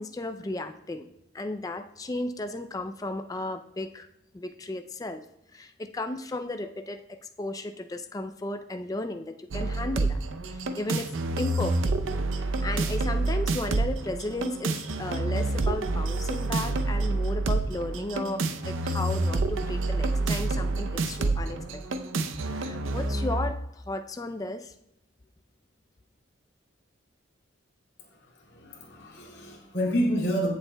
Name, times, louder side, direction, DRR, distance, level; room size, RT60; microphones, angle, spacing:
voice 1, 0.0-4.1 4.3-5.2 5.5-10.2 10.5-22.2 22.5-24.7, left 2 dB, 15° left, 8 dB, 0.4 m, -35 dB
sound 1, 9.5-23.5, right 2 dB, 75° right, 0.6 m, -28 dB
voice 2, 28.5-30.5, equal, 55° left, -2 dB, 2.5 m, -28 dB
16.5 x 7.2 x 2.2 m, 0.80 s
head